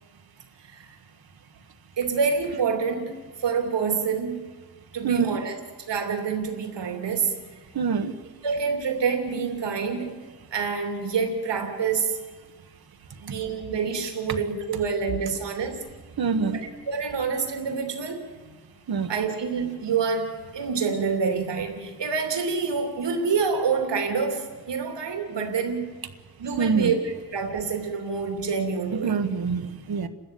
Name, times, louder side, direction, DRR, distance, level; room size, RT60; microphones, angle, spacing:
voice 1, 2.0-3.1 3.4-4.4 4.9-5.6 5.9-7.4 8.4-10.1 10.5-12.2 13.2-15.8 16.3-16.5 16.9-18.3 19.1-25.9 26.4-29.2, right 5 dB, 85° right, 5 dB, 3.0 m, -27 dB
voice 2, 5.0-5.4 7.7-8.1 16.2-16.6 18.9-19.1 26.6-26.9 28.9-30.1, right 5 dB, 60° right, 9 dB, 1.5 m, -25 dB
30.0 x 13.5 x 9.4 m, 1.4 s
wide cardioid pair, 165°, 42 cm